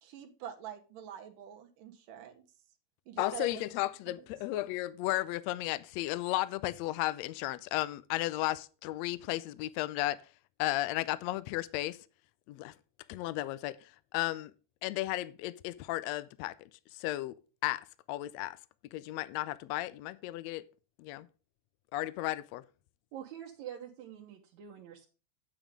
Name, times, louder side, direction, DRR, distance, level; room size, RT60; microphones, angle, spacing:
voice 1, 0.0-2.4 3.1-3.6 4.1-4.2, right 9 dB, 90° right, 2.7 m, -45 dB
voice 2, 3.2-10.2 10.6-12.0 12.5-12.7 13.1-14.5 14.8-18.6 18.9-20.7 21.0-21.3 21.9-22.7, left 16 dB, 90° left, 1.5 m, -34 dB
voice 3, 23.1-25.1, right 9 dB, 70° right, 2.3 m, -46 dB
9.1 x 8.9 x 3.7 m
omnidirectional pair, 3.7 m